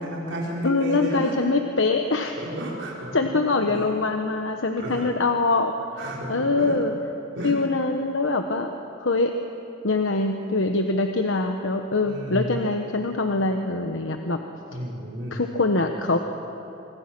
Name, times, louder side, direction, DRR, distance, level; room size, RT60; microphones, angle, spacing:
voice 1, 0.0-1.3 2.4-3.3 3.7-3.8 4.8-5.0 6.0-6.8 7.3-7.5 12.0-12.5 14.7-15.3, equal, 80° right, -4 dB, 4.6 m, -32 dB
voice 2, 0.6-2.4 3.1-5.7 6.3-6.9 7.4-8.7 9.0-9.3 9.8-14.4 15.3-16.2, left 3 dB, 90° left, 5 dB, 1.2 m, -23 dB
25.0 x 25.0 x 6.1 m, 2.8 s
head